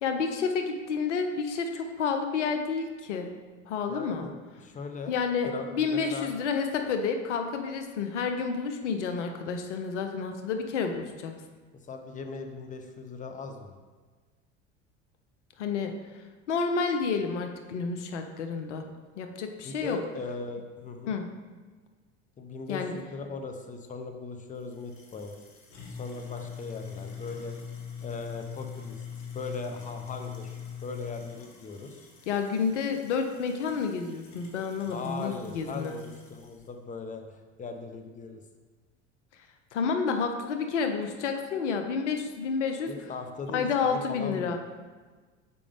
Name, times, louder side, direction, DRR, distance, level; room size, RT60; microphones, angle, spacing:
voice 1, 0.0-3.3 3.7-4.3 5.1-11.3 15.6-15.9 16.5-18.8 19.2-20.0 21.1-21.3 22.7-23.0 32.3-36.0 39.7-42.9 43.5-44.6, left 5 dB, 80° left, 6 dB, 0.7 m, -30 dB
voice 2, 3.9-5.1 5.4-6.3 11.7-13.7 19.6-21.2 22.4-25.4 25.9-27.5 28.0-29.0 29.3-32.1 34.9-38.4 42.9-44.6, left 4 dB, 20° left, 5 dB, 0.8 m, -39 dB
sound 1, 24.6-36.6, left 7 dB, 55° left, 1.4 m, -43 dB
6.8 x 5.0 x 3.4 m, 1.4 s
hypercardioid pair, 80°, 35 cm